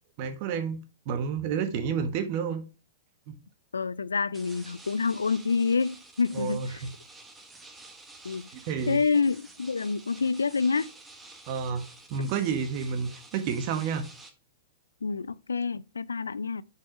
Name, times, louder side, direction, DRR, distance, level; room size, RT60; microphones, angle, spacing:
voice 1, 0.2-2.6 3.3-3.4 6.3-6.9 8.5-9.0 11.5-14.1, right 6 dB, 45° right, 1.4 m, -30 dB
voice 2, 3.7-6.8 8.2-8.5 8.9-10.9 15.0-16.6, left 5 dB, 80° left, 0.3 m, -27 dB
sound 1, 4.3-14.3, right 2 dB, 10° right, 1.3 m, -50 dB
6.3 x 4.7 x 4.7 m
figure-of-eight pair, 105°, 0 cm